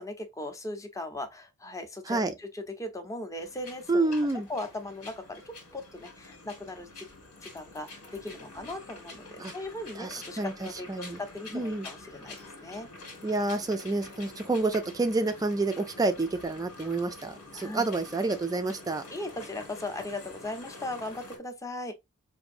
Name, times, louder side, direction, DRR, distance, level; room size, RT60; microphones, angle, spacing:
voice 1, 0.0-4.1 4.5-7.1 7.4-12.9 17.5-17.8 19.1-21.9, left 2 dB, 15° left, 0.7 m, -38 dB
sound 1, 3.3-21.4, left 3 dB, 80° left, 1.7 m, -47 dB
voice 2, 3.9-4.5 9.4-9.5 10.0-11.2 11.5-11.9 13.2-19.0, right 2 dB, 15° right, 0.3 m, -29 dB
5.0 x 2.6 x 2.5 m
head